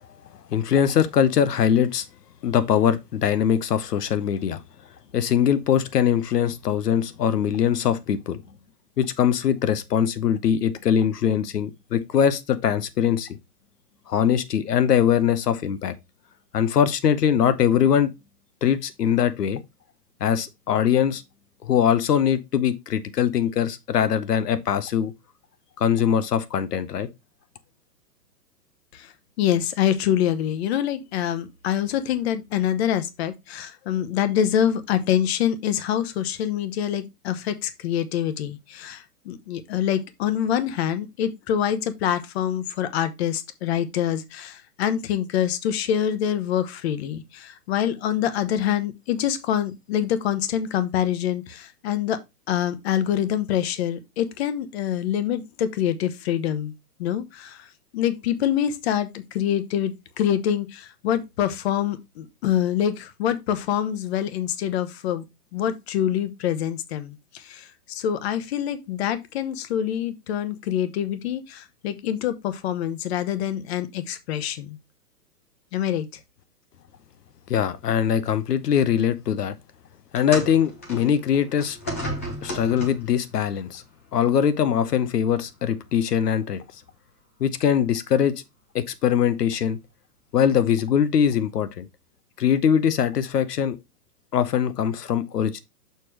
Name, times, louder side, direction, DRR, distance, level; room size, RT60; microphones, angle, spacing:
voice 1, 0.5-2.1 2.4-4.6 5.1-8.4 9.0-13.4 14.1-15.9 16.5-18.1 18.6-19.6 20.2-21.2 21.6-25.1 25.8-27.1 77.5-79.5 80.1-81.8 82.4-83.8 84.1-86.6 87.4-88.3 88.7-89.8 90.3-91.9 92.4-93.8 94.3-95.6, left 8 dB, 80° left, 0.9 m, -22 dB
voice 2, 29.4-52.2 52.5-56.7 57.0-65.2 65.5-74.8 75.7-76.1, left 10 dB, 40° left, 1.0 m, -25 dB
sound 1, 80.1-83.2 84.2-84.4 85.2-85.3, equal, 10° left, 0.3 m, -34 dB
6.8 x 3.2 x 6.1 m
hypercardioid pair, 135°, 47 cm